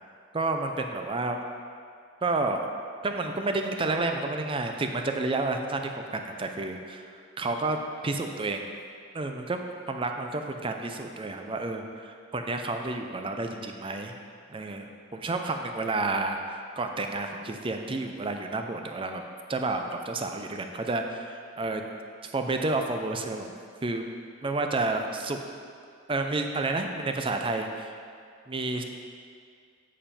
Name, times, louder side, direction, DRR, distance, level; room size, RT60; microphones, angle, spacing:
voice 1, 0.3-1.4 2.2-2.7 3.0-8.7 9.1-9.6 9.9-14.1 14.5-19.2 19.5-21.8 22.3-23.5 23.8-24.1 24.4-25.4 26.1-27.9 28.5-28.8, right 2 dB, 30° right, 4 dB, 0.5 m, -30 dB
7.4 x 7.0 x 4.4 m, 2.2 s
head